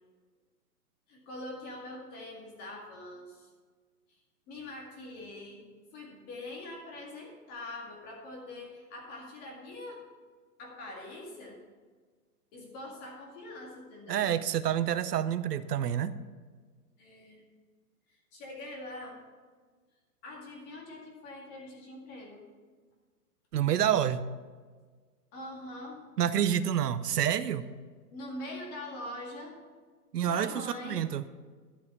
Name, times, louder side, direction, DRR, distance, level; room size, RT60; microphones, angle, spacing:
voice 1, 1.1-3.5 4.5-5.6 5.9-10.0 10.6-11.6 12.5-14.3 17.0-17.4 18.3-19.2 20.2-22.4 25.3-26.0 28.1-29.6 30.2-31.0, left 1 dB, 20° left, 0 dB, 2.1 m, -43 dB
voice 2, 14.1-16.1 23.5-24.2 26.2-27.6 30.1-31.2, right 10 dB, 80° right, 13 dB, 0.8 m, -28 dB
12.5 x 6.9 x 7.1 m, 1.5 s
hypercardioid pair, 165°, 47 cm